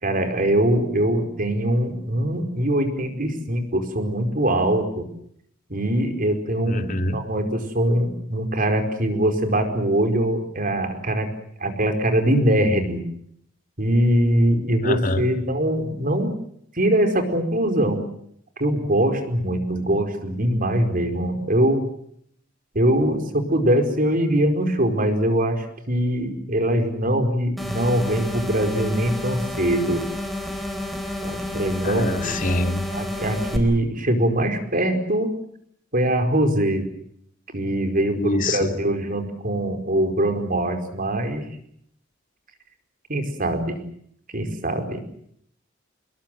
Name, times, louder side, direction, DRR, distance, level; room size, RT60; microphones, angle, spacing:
voice 1, 0.0-5.1 5.7-11.3 11.6-13.0 13.8-16.3 16.7-18.0 18.6-21.8 22.7-30.0 31.2-32.4 32.9-35.3 35.9-36.9 37.5-41.4 43.1-43.8 44.3-45.0, right 1 dB, 45° right, 6 dB, 4.8 m, -22 dB
voice 2, 6.7-7.2 14.8-15.2 31.8-32.8 38.2-38.7, left 2 dB, 45° left, 7 dB, 2.5 m, -25 dB
sound 1, 27.6-33.6, left 1 dB, ahead, 4.4 m, -30 dB
27.5 x 21.5 x 7.8 m, 0.70 s
head